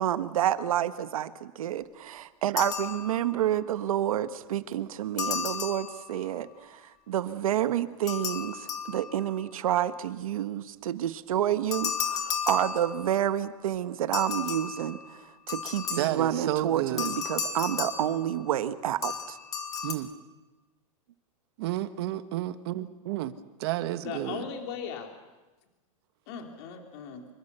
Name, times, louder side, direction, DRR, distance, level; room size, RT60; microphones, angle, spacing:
voice 1, 0.0-6.8 7.1-15.0 15.5-19.4, right 11 dB, 75° right, 11 dB, 1.6 m, -29 dB
sound 1, 2.6-3.5 5.2-6.5 8.1-9.5 11.7-13.3 14.1-16.4 17.0-18.7 19.0-19.9, left 7 dB, 20° left, 1.8 m, -34 dB
voice 2, 15.9-17.1 19.8-20.1 21.6-24.4, right 14 dB, 45° right, 12 dB, 1.3 m, -31 dB
voice 3, 24.0-25.1 26.3-27.3, left 7 dB, 45° left, 4 dB, 3.1 m, -38 dB
26.0 x 24.0 x 6.9 m, 1.2 s
supercardioid pair, 165°, 18 cm